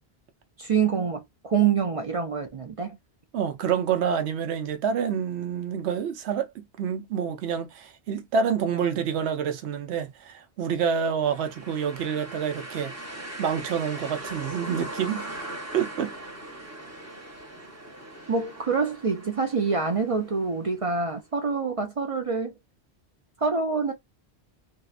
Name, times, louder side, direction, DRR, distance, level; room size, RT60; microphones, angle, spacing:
voice 1, 0.6-3.0 18.3-22.6 23.4-23.9, right 5 dB, 45° right, 0.4 m, -26 dB
voice 2, 3.3-15.4 15.7-16.1, right 7 dB, 80° right, 0.9 m, -28 dB
sound 1, 11.2-21.0, right 1 dB, 15° right, 0.7 m, -40 dB
2.7 x 2.1 x 2.4 m
omnidirectional pair, 1.1 m